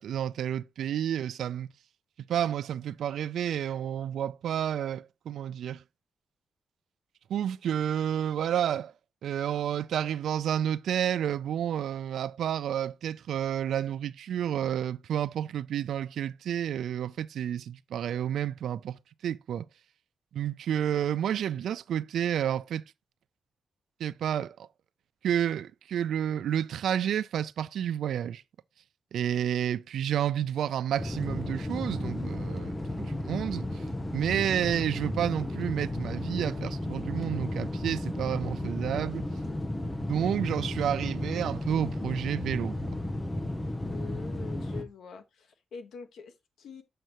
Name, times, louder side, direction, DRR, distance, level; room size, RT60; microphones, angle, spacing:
voice 1, 0.0-1.7 2.3-5.8 7.3-8.9 9.2-19.6 20.3-22.8 24.0-24.7 25.2-28.4 29.1-33.8 34.1-39.2 40.1-42.8, right 10 dB, 90° right, 0.4 m, -30 dB
sound 1, 31.0-44.8, left 1 dB, 15° left, 0.8 m, -33 dB
voice 2, 43.8-46.8, left 5 dB, 80° left, 1.3 m, -45 dB
7.7 x 6.6 x 2.9 m
wide cardioid pair, 150°, 0 cm